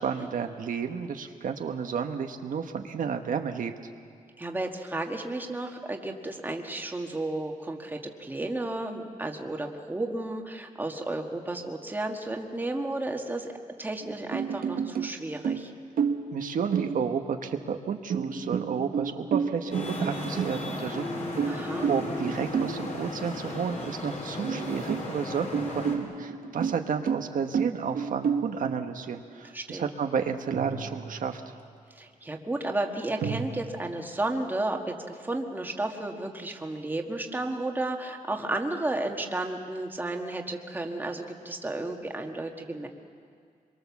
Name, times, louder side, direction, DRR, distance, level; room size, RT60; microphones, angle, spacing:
voice 1, 0.0-3.7 16.3-31.4, right 6 dB, 70° right, 5 dB, 1.1 m, -32 dB
voice 2, 4.4-13.5 13.8-15.7 21.4-21.9 29.5-29.9 31.9-42.9, right 2 dB, 15° right, 2 dB, 1.6 m, -33 dB
sound 1, 14.0-15.2 15.4-16.4 16.7-17.4 18.1-20.9 21.4-22.8 23.5-23.6 23.9-24.0 24.4-25.1 25.5-28.6 30.5-31.3 33.2-33.5, right 6 dB, 90° right, 1.4 m, -30 dB
Traffic noise roadway noise, 19.7-26.0, left 2 dB, 50° left, 3.8 m, -36 dB
sound 2, 20.9-24.6, left 2 dB, 25° left, 1.2 m, -40 dB
25.0 x 23.0 x 7.2 m, 2.2 s
wide cardioid pair, 165°, 14 cm